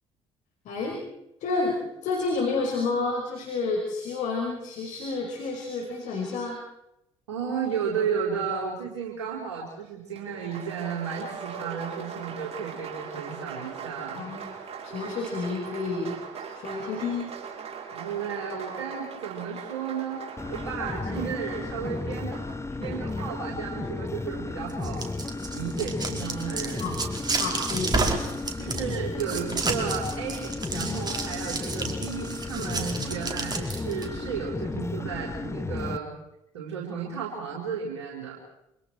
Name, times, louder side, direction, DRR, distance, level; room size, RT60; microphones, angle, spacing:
voice 1, 0.7-1.0 1.4-1.8 2.0-6.6 14.1-14.5 14.8-16.2 16.5-17.3 26.8-27.0 27.4-28.0, left 3 dB, 60° left, 0 dB, 5.2 m, -30 dB
voice 2, 7.3-14.2 17.9-20.2 20.5-22.5 22.8-25.0 25.5-27.0 28.6-36.1 36.5-38.4, right 6 dB, 75° right, -3 dB, 4.5 m, -33 dB
Applause, 10.1-23.4, right 6 dB, 45° right, 7.1 m, -40 dB
sound 1, 20.4-36.0, left 3 dB, 20° left, 1.5 m, -34 dB
sound 2, 24.7-34.1, right 3 dB, 30° right, 4.7 m, -31 dB
28.0 x 26.5 x 4.5 m, 0.85 s
figure-of-eight pair, 50°, 14 cm